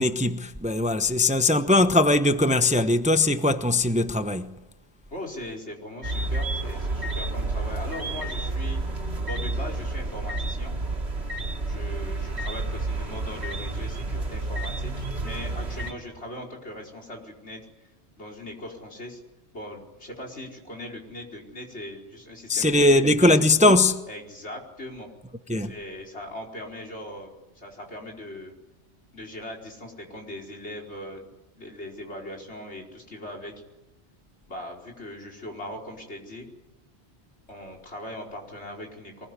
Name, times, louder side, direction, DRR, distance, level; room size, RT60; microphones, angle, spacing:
voice 1, 0.0-4.5 22.5-24.0 25.5-25.7, left 2 dB, 5° right, 0.8 m, -20 dB
voice 2, 5.1-10.7 11.6-17.6 18.2-19.2 19.5-23.3 24.1-25.1 25.6-28.5 29.1-31.3 31.6-33.5 34.5-36.5 37.5-39.3, left 1 dB, 75° left, 5.1 m, -39 dB
sound 1, 6.0-15.9, right 2 dB, 70° right, 2.7 m, -30 dB
23.5 x 20.5 x 9.9 m
omnidirectional pair, 1.2 m